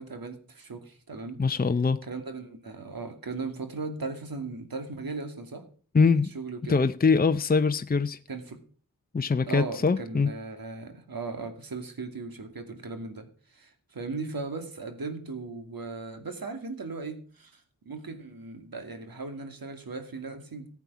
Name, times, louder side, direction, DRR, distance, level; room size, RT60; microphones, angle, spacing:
voice 1, 0.0-1.4 2.0-5.7 6.1-6.8 8.3-8.6 9.4-20.7, right 3 dB, 70° right, 2.5 m, -37 dB
voice 2, 1.4-2.0 5.9-6.3 6.7-8.2 9.1-10.3, left 4 dB, 25° left, 0.7 m, -23 dB
15.0 x 8.5 x 6.1 m
cardioid pair, 45°, 36 cm